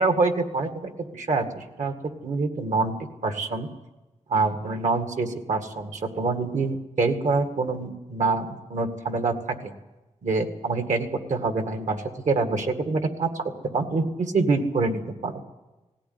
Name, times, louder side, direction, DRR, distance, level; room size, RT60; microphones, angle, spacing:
voice 1, 0.0-1.9 2.2-2.9 3.2-3.7 4.3-9.7 10.2-15.4, right 3 dB, 80° right, 6 dB, 2.0 m, -26 dB
18.5 x 16.5 x 9.6 m, 1.1 s
wide cardioid pair, 150°, 12 cm